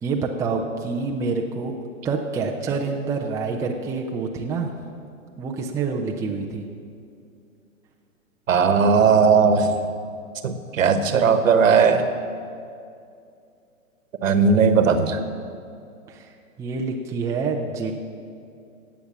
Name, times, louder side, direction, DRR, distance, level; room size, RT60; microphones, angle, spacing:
voice 1, 0.0-1.8 2.0-4.8 5.4-6.7 16.1-16.3 16.6-17.9, right 4 dB, 5° right, 1 dB, 0.6 m, -27 dB
voice 2, 8.5-9.7 10.4-12.0 14.2-15.2, right 5 dB, 70° right, 9 dB, 1.4 m, -17 dB
17.5 x 7.1 x 7.3 m, 2.5 s
hypercardioid pair, 125°, 41 cm